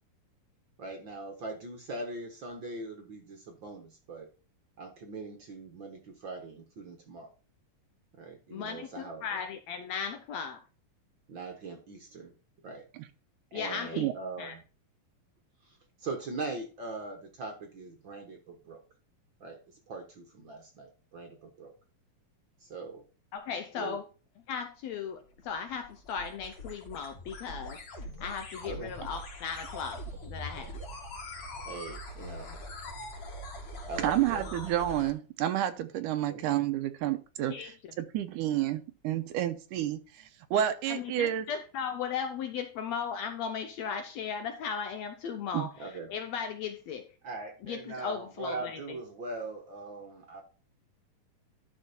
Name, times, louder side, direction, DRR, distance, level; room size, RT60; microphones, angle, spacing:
voice 1, 0.8-4.3 4.8-7.3 8.2-9.4 11.3-12.3 12.6-12.8 13.5-14.6 15.6-18.8 19.4-19.6 19.9-21.7 22.6-23.0 23.7-24.0 28.6-28.9 31.6-32.6 33.9-34.5 36.3-36.5 45.8-46.1 47.2-50.4, right 3 dB, 55° right, 1.4 m, -41 dB
voice 2, 8.5-10.6 13.5-14.1 14.4-14.5 23.3-24.0 24.5-30.7 37.5-37.7 40.9-47.1 47.6-48.8, left 6 dB, 70° left, 1.7 m, -37 dB
sound 1, 25.2-35.1, left 1 dB, 55° left, 3.4 m, -42 dB
voice 3, 34.0-37.7 38.0-41.5 45.5-45.7, right 12 dB, 80° right, 2.2 m, -30 dB
12.0 x 4.5 x 4.2 m
omnidirectional pair, 3.8 m